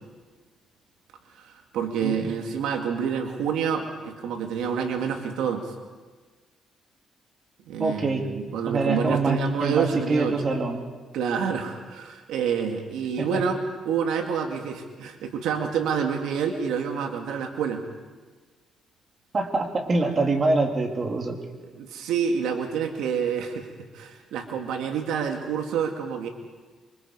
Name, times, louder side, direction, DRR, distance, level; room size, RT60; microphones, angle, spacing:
voice 1, 1.4-5.7 7.7-10.4 11.1-17.8 21.8-23.7 23.9-26.3, right 7 dB, 90° right, 3 dB, 2.1 m, -28 dB
voice 2, 7.8-8.3 8.6-10.8 13.2-13.4 19.3-21.4, right 3 dB, 40° right, 2 dB, 3.3 m, -25 dB
26.5 x 24.5 x 4.8 m, 1.4 s
cardioid pair, 90°, 0 cm